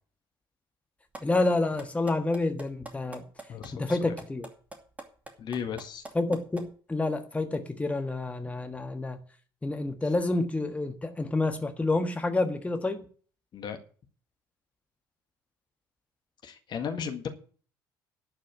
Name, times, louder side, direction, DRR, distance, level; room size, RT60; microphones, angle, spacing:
sound 1, 1.1-1.2 1.5-6.7, right 2 dB, 15° right, 2.6 m, -42 dB
voice 1, 1.2-3.2 3.7-4.5 6.1-9.2 9.6-13.0, left 2 dB, 10° left, 1.5 m, -28 dB
voice 2, 3.5-4.1 5.4-6.0 13.5-13.8 16.4-17.3, left 7 dB, 40° left, 1.8 m, -35 dB
11.5 x 6.2 x 8.6 m
figure-of-eight pair, 55°, 11 cm